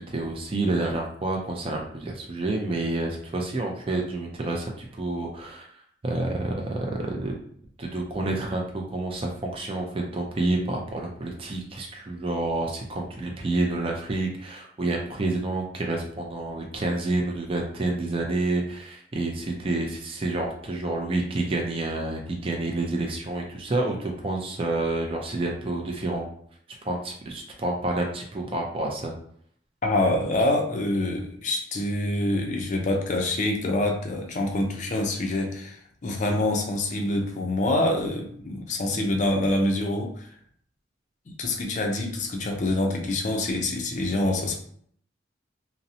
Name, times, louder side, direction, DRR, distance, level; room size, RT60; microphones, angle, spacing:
voice 1, 0.0-5.7 6.0-7.4 7.8-26.3 26.8-29.1 38.9-39.1, right 2 dB, 30° right, 0 dB, 0.4 m, -29 dB
voice 2, 29.8-40.3 41.3-44.5, left 1 dB, 40° left, 2 dB, 0.4 m, -26 dB
2.6 x 2.0 x 2.6 m, 0.62 s
head